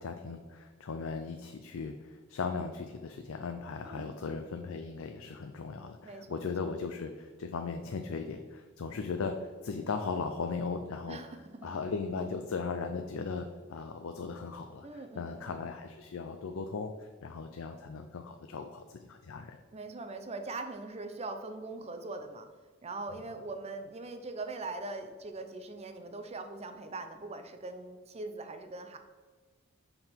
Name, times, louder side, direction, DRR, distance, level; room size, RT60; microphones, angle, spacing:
voice 1, 0.0-11.2 11.6-19.6, left 4 dB, 85° left, 6 dB, 0.5 m, -37 dB
voice 2, 6.0-6.5 11.1-11.7 14.8-15.4 19.7-22.5 22.8-29.0, right 3 dB, 30° right, 7 dB, 0.6 m, -41 dB
5.7 x 5.3 x 4.4 m, 1.5 s
head